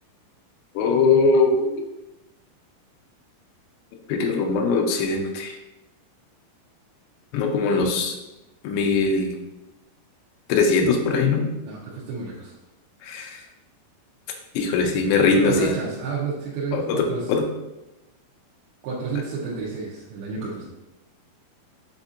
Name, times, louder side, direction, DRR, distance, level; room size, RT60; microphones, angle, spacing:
voice 1, 0.8-1.7 4.1-5.6 7.3-8.1 8.6-9.3 10.5-11.5 13.0-13.4 14.6-15.7 16.7-17.5, left 4 dB, 85° left, 2 dB, 2.8 m, -21 dB
voice 2, 11.6-12.5 15.2-17.2 18.8-20.7, right 4 dB, 90° right, -6 dB, 2.9 m, -30 dB
6.9 x 2.5 x 2.7 m, 0.98 s
omnidirectional pair, 5.1 m